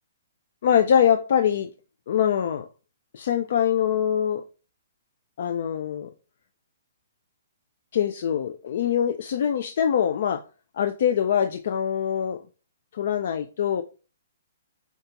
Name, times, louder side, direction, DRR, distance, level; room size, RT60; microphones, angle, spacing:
voice 1, 0.6-1.7 2.1-2.7 3.1-4.4 5.4-6.1 7.9-10.4 10.7-12.4 12.9-13.8, left 9 dB, 60° left, 0.3 m, -23 dB
6.4 x 2.3 x 2.9 m
hypercardioid pair, 145°, 0 cm